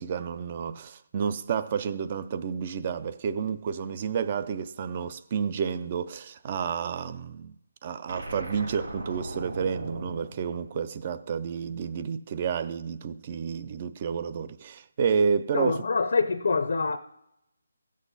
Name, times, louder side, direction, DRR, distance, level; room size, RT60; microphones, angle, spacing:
voice 1, 0.0-7.5 7.8-15.9, right 6 dB, 25° right, 0.4 m, -30 dB
sound 1, 8.1-11.4, right 1 dB, 75° right, 3.3 m, -39 dB
voice 2, 15.5-17.0, left 4 dB, 60° left, 0.6 m, -25 dB
15.5 x 6.3 x 4.0 m
hypercardioid pair, 170°, 0 cm